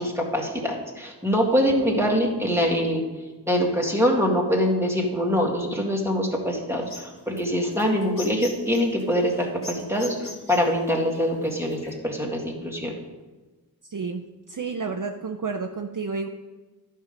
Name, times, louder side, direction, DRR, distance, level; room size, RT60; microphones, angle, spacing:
voice 1, 0.0-3.0 3.5-12.9, equal, 5° right, -1 dB, 1.9 m, -24 dB
sound 1, 6.8-11.9, left 2 dB, 80° left, 1.9 m, -42 dB
voice 2, 13.8-16.3, right 4 dB, 50° right, 4 dB, 0.6 m, -31 dB
11.5 x 5.6 x 5.1 m, 1.2 s
wide cardioid pair, 40°, 40 cm